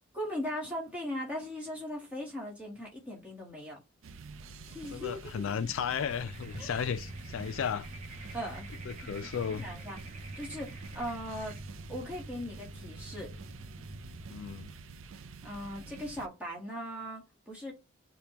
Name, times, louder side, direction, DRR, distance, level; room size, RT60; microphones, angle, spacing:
voice 1, 0.1-3.8 4.6-5.5 6.6-6.8 8.3-8.7 9.0-9.1 9.5-10.0 10.3-11.6 11.9-13.3 15.4-17.7, equal, 5° right, 1.3 m, -39 dB
sound 1, 4.0-16.3, right 4 dB, 80° right, 0.5 m, -48 dB
voice 2, 4.9-7.9 8.9-9.7 14.3-14.7, left 7 dB, 75° left, 0.4 m, -34 dB
sound 2, 5.9-11.6, right 3 dB, 35° right, 0.8 m, -51 dB
sound 3, 6.3-14.7, right 1 dB, 60° right, 1.1 m, -47 dB
5.1 x 2.2 x 2.9 m
head